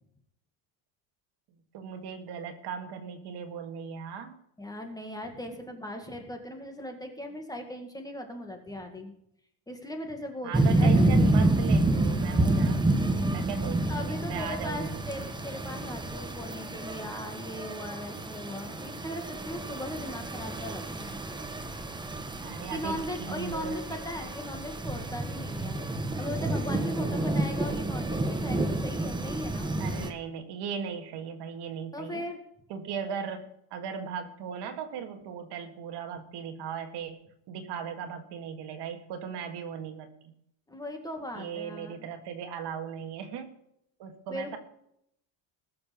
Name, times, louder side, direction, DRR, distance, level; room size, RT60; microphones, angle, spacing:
voice 1, 1.7-4.4 10.4-15.1 22.4-24.0 29.8-32.3 32.7-40.3 41.4-43.5 44.0-44.6, right 7 dB, 55° right, 6 dB, 1.9 m, -38 dB
voice 2, 4.6-9.1 9.7-11.1 13.9-21.2 21.8-21.9 22.7-25.8 26.2-29.7 31.9-32.4 40.7-42.1 44.3-44.6, left 1 dB, 10° left, 4 dB, 2.0 m, -38 dB
sound 1, 10.5-30.1, right 2 dB, 10° right, 1.0 m, -29 dB
20.5 x 7.0 x 5.3 m, 0.74 s
cardioid pair, 155°, 48 cm